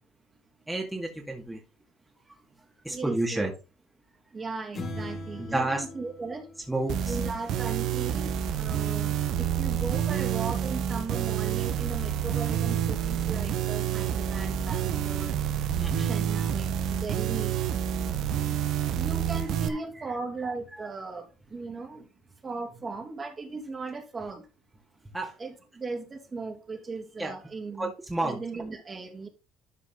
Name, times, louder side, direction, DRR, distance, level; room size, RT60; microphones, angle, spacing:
voice 1, 0.7-1.6 2.3-2.4 2.8-3.5 5.4-5.8 6.7-7.2 15.8-16.1 19.7-19.8 20.1-20.2 20.8-20.9 25.1-25.4 27.2-27.4 27.8-28.4, right 2 dB, 10° right, 2.2 m, -30 dB
voice 2, 2.9-3.5 4.3-6.4 7.1-15.4 16.0-16.7 17.0-17.6 19.0-22.1 22.4-24.4 25.4-27.9 28.2-29.3, right 3 dB, 35° right, 2.9 m, -37 dB
sound 1, 4.7-7.4, left 1 dB, 45° left, 3.0 m, -40 dB
sound 2, 6.9-19.7, right 9 dB, 65° right, 1.1 m, -28 dB
12.5 x 4.9 x 3.8 m
supercardioid pair, 75°, 0 cm